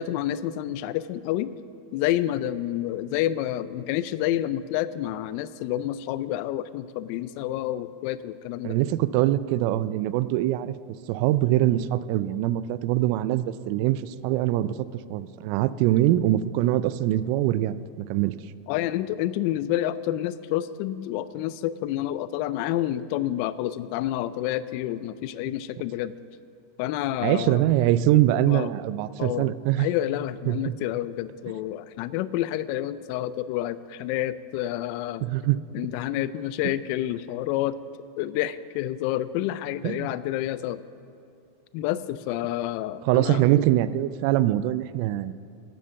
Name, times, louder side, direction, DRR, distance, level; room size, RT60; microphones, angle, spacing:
voice 1, 0.0-1.5 1.9-8.8 18.7-26.1 26.8-27.6 28.4-28.7 29.2-29.5 29.8-35.3 35.7-37.8 38.2-40.8 41.7-43.4, left 13 dB, 55° left, 16 dB, 0.4 m, -29 dB
voice 2, 8.6-10.7 11.1-14.7 15.1-18.3 27.2-29.9 30.5-30.7 35.2-35.6 39.8-40.1 43.0-45.3, right 14 dB, 55° right, 16 dB, 0.4 m, -23 dB
8.6 x 8.5 x 6.9 m, 2.5 s
supercardioid pair, 130°, 0 cm